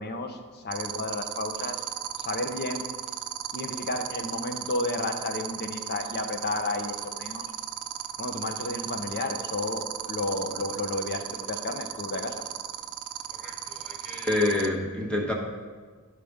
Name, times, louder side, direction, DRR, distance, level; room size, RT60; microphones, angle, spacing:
voice 1, 0.0-1.8 2.2-2.8 3.5-7.5 8.2-12.4, left 2 dB, 50° left, 5 dB, 0.7 m, -32 dB
sound 1, 0.7-14.7, right 11 dB, 75° right, 0.4 m, -34 dB
voice 2, 13.3-15.3, left 2 dB, 5° left, -2 dB, 1.1 m, -28 dB
11.5 x 5.0 x 3.6 m, 1.5 s
head